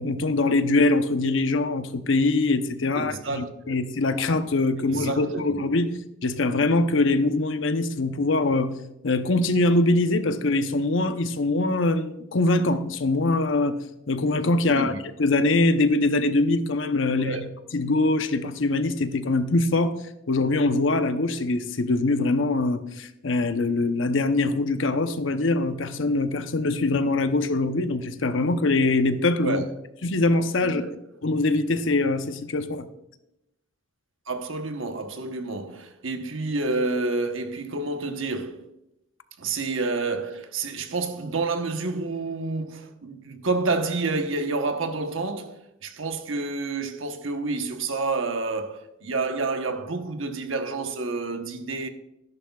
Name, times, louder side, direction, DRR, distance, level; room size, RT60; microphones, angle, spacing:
voice 1, 0.0-5.9 6.2-8.7 9.0-13.8 14.1-14.9 15.2-17.3 17.7-20.0 20.3-29.6 30.0-30.8 31.2-32.9, left 2 dB, 75° left, 0.8 m, -23 dB
voice 2, 2.9-3.8 4.8-5.6 14.6-15.0 17.1-17.5 29.4-29.7 30.6-30.9 34.3-38.6 39.4-51.9, right 3 dB, 85° right, 1.1 m, -29 dB
13.0 x 11.0 x 2.4 m
head